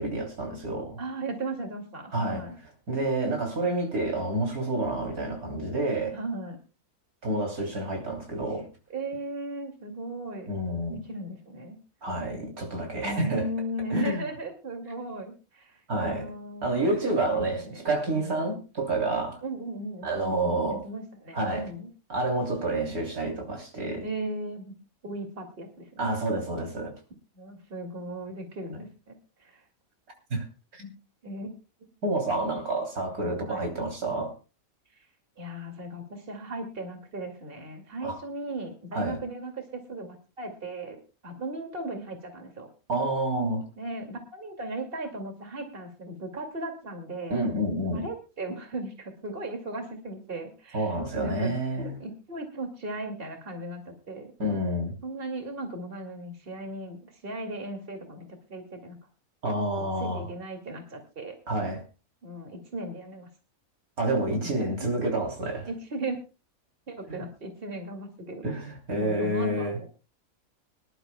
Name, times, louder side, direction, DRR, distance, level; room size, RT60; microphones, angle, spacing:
voice 1, 0.0-1.0 2.1-2.5 2.9-6.2 7.2-8.7 10.5-11.0 12.0-13.5 13.9-14.2 15.9-16.3 16.6-19.4 20.0-20.8 21.3-21.7 22.1-24.1 26.0-26.9 30.3-30.4 30.7-30.9 32.0-34.4 38.0-38.2 38.9-39.2 42.9-43.7 47.3-48.1 50.7-51.9 54.4-55.0 59.4-60.3 61.5-61.8 64.0-65.7 67.1-67.2 68.4-69.8, right 1 dB, 90° right, 3.8 m, -29 dB
voice 2, 1.0-2.6 6.1-6.6 8.9-10.5 10.9-11.8 13.0-16.8 17.3-17.9 18.1-18.6 19.4-21.9 24.0-24.7 25.0-26.1 27.3-29.1 29.4-29.6 31.2-31.5 31.8-31.9 33.4-33.6 35.4-41.0 41.2-42.7 43.8-47.4 47.9-51.5 51.8-54.3 55.0-59.0 59.7-61.4 62.2-63.3 64.6-64.9 65.7-66.2 66.9-68.5 69.0-69.9, right 2 dB, 40° right, 2.6 m, -37 dB
24.5 x 11.5 x 2.3 m
omnidirectional pair, 1.5 m